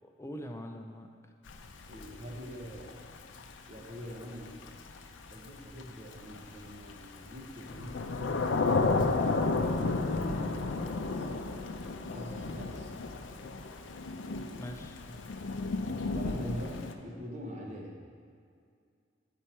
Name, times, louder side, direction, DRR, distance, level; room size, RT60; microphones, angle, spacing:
voice 1, 0.0-1.1 14.6-15.0, equal, 15° left, 4 dB, 0.4 m, -43 dB
Thunder / Rain, 1.5-16.9, left 3 dB, 90° left, 0.5 m, -33 dB
voice 2, 1.9-3.0 3.7-4.6 5.3-8.1 8.4-9.6 10.2-11.3 12.1-12.9 16.0-17.9, equal, 40° right, -1 dB, 1.0 m, -44 dB
8.4 x 4.4 x 4.3 m, 2.2 s
head